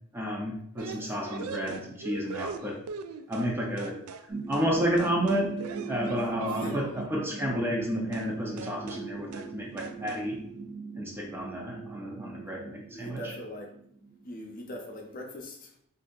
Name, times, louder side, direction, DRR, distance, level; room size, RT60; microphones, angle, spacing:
voice 1, 0.1-2.8 3.3-4.0 4.5-5.6 5.9-10.4 11.0-13.3, equal, 10° right, -1 dB, 0.5 m, -31 dB
sound 1, 0.8-3.5 3.8-4.3 4.5-4.7 5.0-7.1 8.1-8.3 8.6-9.1 9.3-9.5 9.8-10.3, right 5 dB, 90° right, 0.3 m, -40 dB
sound 2, 4.3-14.7, right 5 dB, 35° right, 0.9 m, -40 dB
voice 2, 12.9-13.7 14.2-15.7, equal, 40° left, 1 dB, 0.6 m, -40 dB
3.2 x 2.6 x 3.7 m, 0.70 s
head